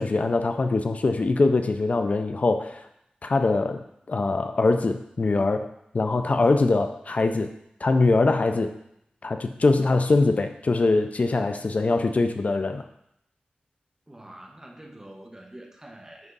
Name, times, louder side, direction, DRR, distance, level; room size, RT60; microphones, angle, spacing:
voice 1, 0.0-2.9 3.2-7.5 7.8-8.7 9.2-12.8, left 3 dB, 50° left, 8 dB, 0.4 m, -23 dB
voice 2, 14.1-16.3, right 1 dB, 15° right, 2 dB, 1.0 m, -45 dB
10.5 x 3.6 x 3.9 m, 0.77 s
wide cardioid pair, 100°, 3 cm